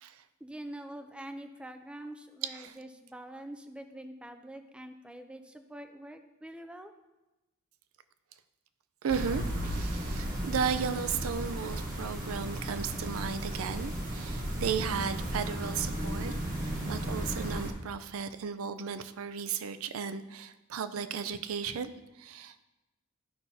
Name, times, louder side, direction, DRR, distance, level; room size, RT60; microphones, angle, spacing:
voice 1, 0.4-6.9, right 1 dB, 5° right, 7 dB, 0.4 m, -45 dB
voice 2, 2.4-2.8 9.0-21.9 22.2-22.7, right 7 dB, 85° right, 12 dB, 0.4 m, -35 dB
sound 1, 9.1-17.7, right 1 dB, 40° right, 1.3 m, -35 dB
12.0 x 5.6 x 2.7 m, 1.0 s
head